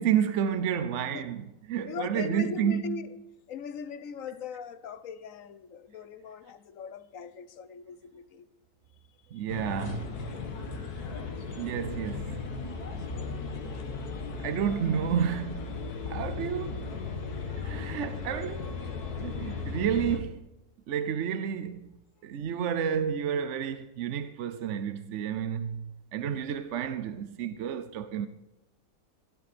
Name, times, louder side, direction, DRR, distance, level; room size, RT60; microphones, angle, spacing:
voice 1, 0.0-3.1 9.3-10.3 11.5-12.4 14.4-15.7 16.1-16.9 17.6-18.7 19.2-20.5 20.9-21.9 22.2-28.3, right 8 dB, 60° right, 0.9 m, -30 dB
voice 2, 1.9-3.1 3.5-8.5 9.3-9.4 10.8-10.9 12.7-14.2, left 7 dB, 65° left, 1.2 m, -41 dB
sound 1, 9.5-20.2, left 4 dB, 90° left, 2.0 m, -36 dB
16.0 x 11.5 x 4.2 m
omnidirectional pair, 1.6 m